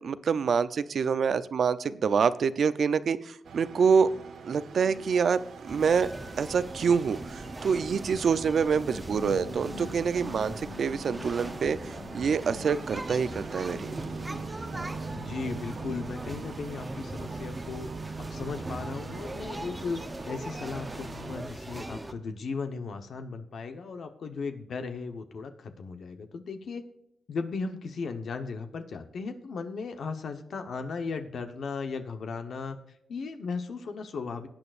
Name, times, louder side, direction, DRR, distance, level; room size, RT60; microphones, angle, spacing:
voice 1, 0.0-4.1 4.5-5.4 5.7-6.1 6.4-13.9, right 6 dB, 60° right, 14 dB, 0.6 m, -26 dB
sound 1, 3.4-21.4, right 5 dB, 80° right, 1.1 m, -43 dB
sound 2, 5.7-22.1, right 1 dB, 15° right, 0.9 m, -40 dB
sound 3, 8.2-16.0, left 5 dB, 45° left, 2.6 m, -46 dB
voice 2, 15.1-17.9 18.3-26.8 27.3-32.8 33.1-34.5, left 4 dB, 70° left, 7 dB, 1.1 m, -36 dB
19.0 x 9.1 x 2.5 m, 0.75 s
wide cardioid pair, 125°, 0 cm